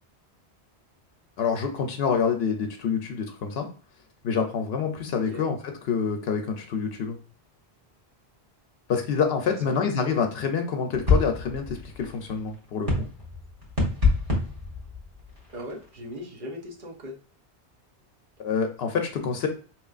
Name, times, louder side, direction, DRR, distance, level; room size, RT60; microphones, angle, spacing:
voice 1, 1.4-3.7 4.2-5.6 5.9-7.2 8.9-13.1 18.4-19.5, left 6 dB, 75° left, 5 dB, 0.8 m, -27 dB
voice 2, 9.6-10.1 15.5-17.2, equal, 55° right, -1 dB, 1.0 m, -39 dB
sound 1, 10.9-15.9, left 3 dB, 35° right, 1.3 m, -27 dB
4.5 x 3.0 x 2.4 m, 0.39 s
omnidirectional pair, 1.1 m